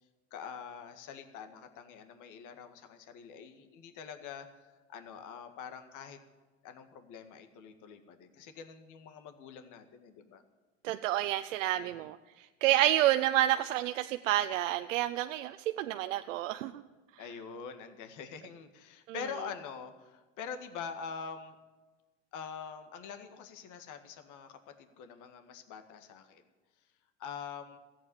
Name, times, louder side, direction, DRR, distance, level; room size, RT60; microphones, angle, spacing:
voice 1, 0.3-4.5 4.9-6.2 6.6-10.4 11.7-12.0 17.2-21.6 22.3-26.4 27.2-27.8, left 6 dB, 55° left, 8 dB, 1.9 m, -45 dB
voice 2, 10.8-12.2 12.6-16.7, right 14 dB, 80° right, 9 dB, 0.7 m, -29 dB
14.5 x 8.5 x 9.8 m, 1.3 s
hypercardioid pair, 95°, 37 cm